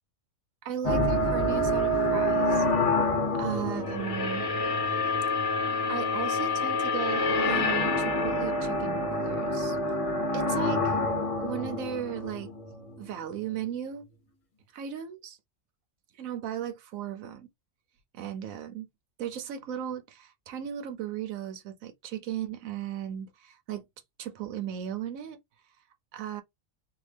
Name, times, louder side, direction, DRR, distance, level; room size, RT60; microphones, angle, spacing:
voice 1, 0.6-2.6 3.3-4.5 5.9-9.8 10.3-11.0 11.4-12.5 13.0-14.0 14.7-15.4 16.2-17.5 18.1-18.9 19.2-23.8 24.2-25.4 26.1-26.4, right 9 dB, 90° right, 1.1 m, -36 dB
sound 1, 0.8-13.0, left 2 dB, 35° left, 0.6 m, -27 dB
3.5 x 2.2 x 3.3 m
omnidirectional pair, 1.4 m